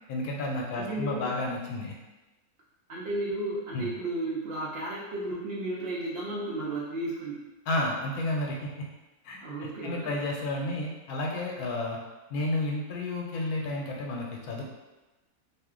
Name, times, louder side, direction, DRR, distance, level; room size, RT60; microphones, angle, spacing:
voice 1, 0.1-1.9 3.7-3.9 7.7-8.9 9.2-12.0 12.3-14.6, left 2 dB, 90° left, -1 dB, 1.1 m, -31 dB
voice 2, 0.7-1.3 2.9-7.4 9.4-10.2, right 2 dB, 65° right, -6 dB, 0.6 m, -33 dB
2.6 x 2.1 x 3.5 m, 1.1 s
omnidirectional pair, 1.5 m